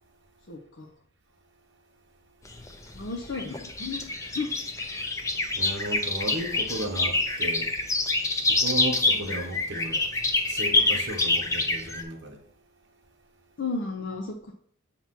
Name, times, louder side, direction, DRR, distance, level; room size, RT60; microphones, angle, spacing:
voice 1, 0.5-0.9 2.9-4.5 9.2-9.4 13.6-14.5, left 4 dB, 55° left, 0.6 m, -34 dB
sound 1, 2.5-12.0, left 2 dB, 15° left, 0.5 m, -26 dB
voice 2, 5.5-7.7 8.5-10.1 10.5-12.4, right 1 dB, 55° right, 1.1 m, -34 dB
6.8 x 2.9 x 5.8 m
head